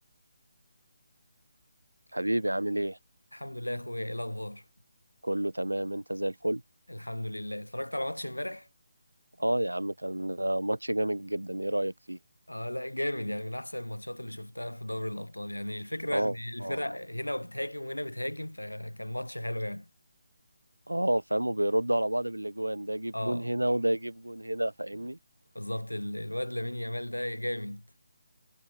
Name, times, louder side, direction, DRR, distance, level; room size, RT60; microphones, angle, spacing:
voice 1, 2.1-3.0 5.2-6.6 9.4-12.2 16.1-16.3 16.6-16.8 20.9-25.2, right 1 dB, 80° right, 0.7 m, -29 dB
voice 2, 3.3-4.6 6.9-8.7 12.5-19.9 23.1-23.5 25.6-27.8, left 1 dB, 85° left, 1.8 m, -35 dB
figure-of-eight pair, 150°, 0 cm